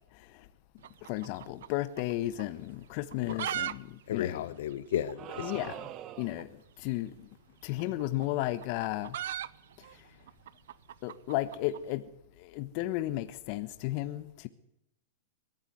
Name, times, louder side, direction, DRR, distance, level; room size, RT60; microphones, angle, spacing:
voice 1, 0.1-0.5 1.0-4.4 5.4-5.9 6.2-7.3 7.6-9.2 9.8-10.1 11.0-12.0 12.4-14.5, left 15 dB, 50° left, 1.2 m, -34 dB
sound 1, 0.8-2.1 2.4-2.5 3.0-4.0 4.3-4.4 5.0-5.1 6.3-6.5 7.6-11.9, right 11 dB, 75° right, 0.8 m, -38 dB
voice 2, 4.1-5.5, left 11 dB, 70° left, 1.3 m, -33 dB
sound 2, 5.2-6.5, right 12 dB, 35° right, 1.2 m, -43 dB
22.0 x 14.0 x 9.5 m
hypercardioid pair, 130°, 0 cm